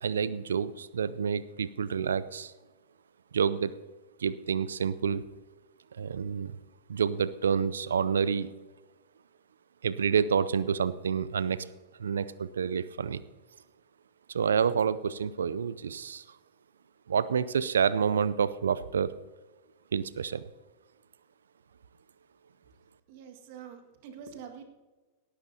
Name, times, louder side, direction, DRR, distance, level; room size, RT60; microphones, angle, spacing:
voice 1, 0.0-2.5 3.3-3.7 4.2-5.2 5.9-6.6 6.9-8.5 9.8-11.7 12.0-13.2 14.3-16.2 17.1-19.2 19.9-20.4, right 7 dB, 75° right, 17 dB, 0.5 m, -28 dB
voice 2, 23.1-24.6, right 7 dB, 55° right, 5 dB, 1.9 m, -46 dB
18.0 x 13.0 x 2.8 m, 1.2 s
hypercardioid pair, 95°, 0 cm